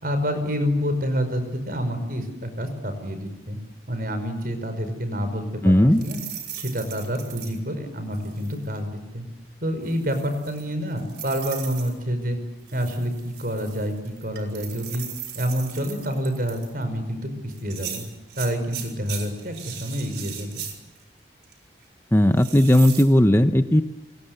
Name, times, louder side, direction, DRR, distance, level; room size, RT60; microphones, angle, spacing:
voice 1, 0.0-3.6 3.9-6.2 6.5-9.2 9.6-12.4 12.7-15.0 15.3-18.0 18.3-20.6, equal, 55° right, 9 dB, 5.6 m, -28 dB
voice 2, 5.6-6.0 22.1-23.8, left 1 dB, 15° left, 9 dB, 0.9 m, -16 dB
sound 1, 5.9-7.6 8.1-8.7 9.9-11.9 12.7-16.8 17.5-21.0 21.4-21.5 22.4-23.0, right 9 dB, 75° right, 5.5 m, -38 dB
29.5 x 24.0 x 8.0 m, 1.0 s
head